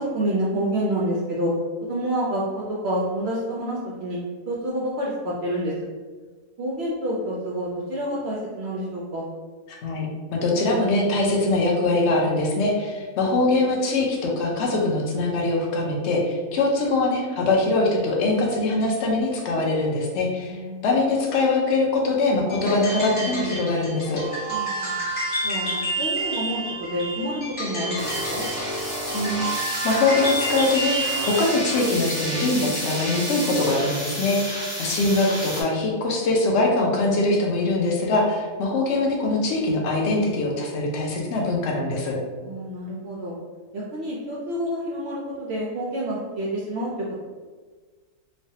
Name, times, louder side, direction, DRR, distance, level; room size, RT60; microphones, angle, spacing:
voice 1, 0.0-1.5 1.9-4.2 4.5-5.7 6.6-9.3 20.5-20.8 24.5-25.0 25.4-28.5 42.4-43.3 43.7-46.9, equal, 70° right, -5 dB, 0.6 m, -28 dB
voice 2, 9.8-20.5 20.8-24.2 29.1-29.5 29.8-31.0 31.2-42.1, left 2 dB, 60° left, -1 dB, 0.8 m, -22 dB
sound 1, 22.5-31.5, right 1 dB, 40° left, 1.2 m, -29 dB
sound 2, 28.0-35.6, equal, 20° right, 0.4 m, -30 dB
3.1 x 2.2 x 2.7 m, 1.4 s
omnidirectional pair, 1.6 m